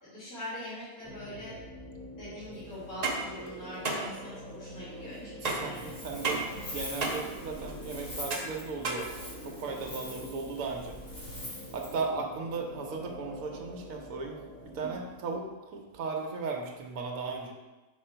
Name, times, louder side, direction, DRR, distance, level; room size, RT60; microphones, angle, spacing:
voice 1, 0.0-1.6 2.1-5.9 14.7-15.0, left 1 dB, 80° left, -12 dB, 2.2 m, -43 dB
sound 1, 1.0-15.4, equal, 15° left, 0.5 m, -46 dB
sound 2, 2.8-9.7, right 3 dB, 35° right, 0.7 m, -35 dB
voice 2, 5.4-9.1 9.4-11.0 11.7-15.4 15.7-17.5, right 4 dB, 65° right, 1 dB, 1.2 m, -36 dB
Wind, 5.6-12.0, left 1 dB, 40° left, 1.6 m, -44 dB
5.6 x 3.8 x 4.4 m, 1.1 s
omnidirectional pair, 1.6 m